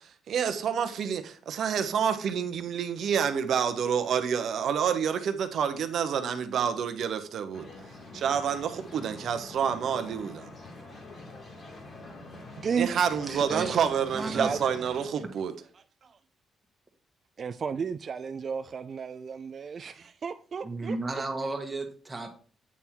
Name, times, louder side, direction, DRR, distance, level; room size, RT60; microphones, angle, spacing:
voice 1, 0.0-7.7 8.1-10.5 12.8-15.5, right 7 dB, 65° right, 0.9 m, -28 dB
sound 1, 7.5-15.1, left 2 dB, 50° left, 2.1 m, -45 dB
voice 2, 13.3-13.8 14.1-14.5 20.6-22.3, right 2 dB, 20° right, 1.6 m, -34 dB
voice 3, 14.3-14.6 16.0-16.1 17.4-21.0, right 6 dB, 45° right, 0.3 m, -33 dB
8.5 x 3.6 x 4.5 m
cardioid pair, 90°, 0 cm